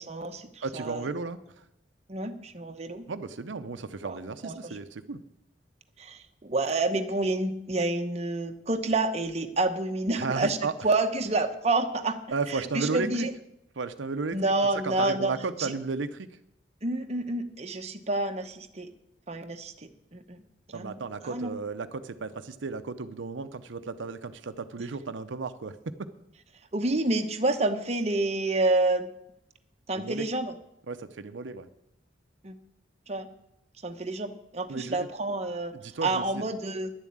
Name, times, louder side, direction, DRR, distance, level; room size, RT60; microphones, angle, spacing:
voice 1, 0.0-1.1 2.1-3.0 4.0-4.8 6.0-10.6 10.8-12.2 12.7-13.3 14.3-15.3 15.6-15.7 16.8-18.9 19.3-20.4 20.7-21.0 21.2-21.5 26.7-29.1 29.9-30.5 32.4-32.5 33.1-33.3 33.8-35.7 36.0-36.9, right 2 dB, 35° right, 6 dB, 0.9 m, -28 dB
voice 2, 0.6-1.6 3.1-5.2 10.2-10.7 12.3-13.3 13.8-14.4 14.8-16.3 20.7-25.9 29.9-30.3 30.9-31.7 34.7-35.1 35.7-36.4, right 4 dB, 90° right, 10 dB, 0.6 m, -34 dB
10.5 x 7.3 x 8.6 m, 0.79 s
head